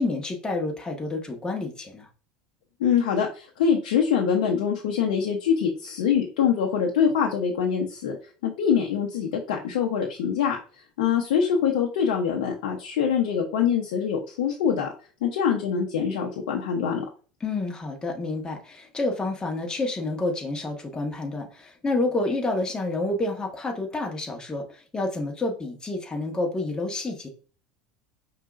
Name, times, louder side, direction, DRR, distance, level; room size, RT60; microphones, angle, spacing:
voice 1, 0.0-2.1 17.4-27.3, left 2 dB, 20° left, 1 dB, 1.5 m, -29 dB
voice 2, 2.8-8.2 8.4-10.6 11.0-14.9 15.2-17.0, left 7 dB, 75° left, 0 dB, 0.9 m, -24 dB
5.4 x 3.8 x 2.6 m, 0.37 s
hypercardioid pair, 80°, 4 cm